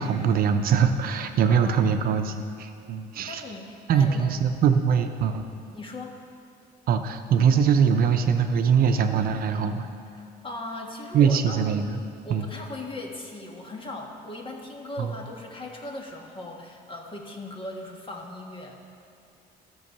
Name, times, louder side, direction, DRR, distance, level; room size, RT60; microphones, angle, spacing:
voice 1, 0.0-3.4 3.9-5.4 6.9-9.9 11.1-12.0 12.3-12.5 15.0-15.1, right 7 dB, 60° right, 6 dB, 0.7 m, -22 dB
voice 2, 1.4-2.0 3.3-4.4 5.5-6.2 10.1-11.6 12.2-18.8, left 2 dB, 30° left, 1 dB, 1.5 m, -38 dB
12.5 x 6.3 x 6.8 m, 2.5 s
cardioid pair, 110°, 17 cm